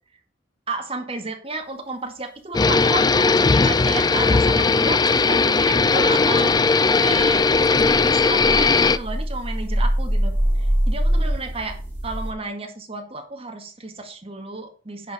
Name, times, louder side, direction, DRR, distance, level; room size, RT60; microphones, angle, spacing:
voice 1, 0.7-11.8 12.0-15.1, right 3 dB, 30° right, 4 dB, 1.9 m, -32 dB
sound 1, 2.5-9.0, left 4 dB, 20° left, 0.4 m, -18 dB
sound 2, 4.7-6.3 6.7-6.8 7.1-12.3, equal, 10° right, 3.2 m, -24 dB
10.0 x 4.9 x 5.8 m, 0.40 s
head